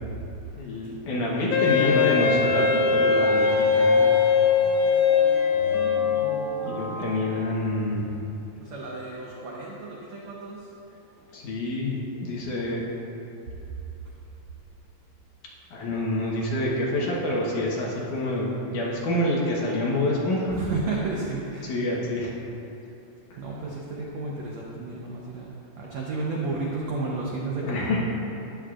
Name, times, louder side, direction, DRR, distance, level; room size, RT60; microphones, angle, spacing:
voice 1, 0.6-4.2 6.6-8.2 11.3-12.8 15.7-20.6 21.6-22.3 23.3-23.4 27.5-28.0, left 1 dB, 65° left, -4 dB, 2.4 m, -27 dB
Wind instrument woodwind instrument, 1.5-6.6, left 5 dB, 90° left, 2.7 m, -21 dB
sound 1, 2.1-7.8, left 1 dB, 45° right, 2.6 m, -34 dB
voice 2, 8.6-10.6 20.5-21.7 23.4-25.5 25.8-28.0, right 3 dB, 85° right, -4 dB, 1.5 m, -32 dB
13.0 x 10.0 x 2.5 m, 2.9 s
omnidirectional pair, 4.4 m